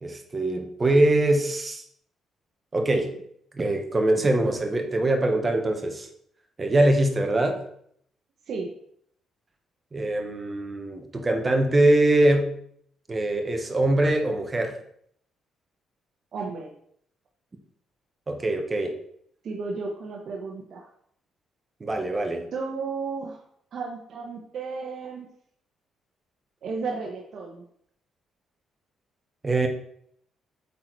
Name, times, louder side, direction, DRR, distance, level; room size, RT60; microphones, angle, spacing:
voice 1, 0.0-1.8 2.7-3.1 3.5-6.1 6.6-7.6 9.9-12.5 13.1-14.8 18.3-19.0 21.8-22.5 29.4-29.7, right 1 dB, 20° right, 4 dB, 1.1 m, -23 dB
voice 2, 16.3-16.7 19.4-20.9 22.5-23.4 23.7-25.3 26.6-27.6, right 4 dB, 55° right, -1 dB, 1.1 m, -33 dB
8.3 x 4.3 x 4.6 m, 0.68 s
cardioid pair, 130°, 0 cm